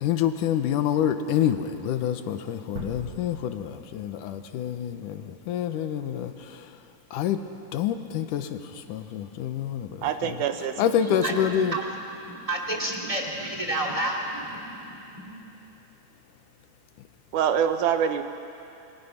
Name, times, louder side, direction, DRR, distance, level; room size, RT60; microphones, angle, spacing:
voice 1, 0.0-6.7 7.1-7.4 7.7-10.1 10.8-11.8, left 9 dB, 80° left, 8 dB, 2.4 m, -27 dB
sound 1, 2.8-5.7, right 2 dB, 55° right, 3.1 m, -43 dB
voice 2, 10.0-10.8 17.3-18.2, right 8 dB, 75° right, 8 dB, 2.3 m, -25 dB
voice 3, 10.9-15.4, right 1 dB, 10° right, 0 dB, 2.0 m, -31 dB
28.0 x 23.0 x 5.8 m, 2.7 s
omnidirectional pair, 3.7 m